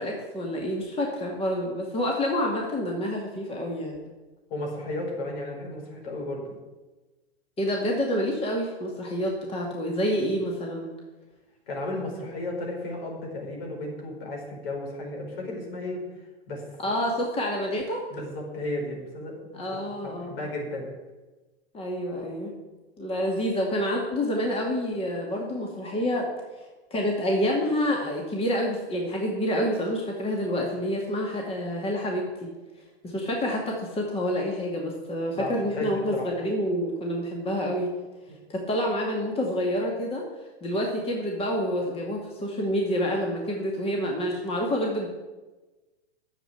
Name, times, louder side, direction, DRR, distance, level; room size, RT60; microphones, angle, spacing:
voice 1, 0.0-4.0 7.6-10.9 16.8-18.0 19.5-20.4 21.7-22.5 23.0-26.3 26.6-26.7 26.9-32.2 33.0-37.9 38.5-40.2 40.6-45.1, equal, 20° left, 0 dB, 2.1 m, -28 dB
voice 2, 4.5-6.5 11.7-16.0 16.5-16.9 18.1-19.3 19.7-19.8 20.0-20.9 35.3-36.2, left 1 dB, 65° left, -1 dB, 5.2 m, -34 dB
10.0 x 7.7 x 8.3 m, 1.2 s
hypercardioid pair, 120°, 32 cm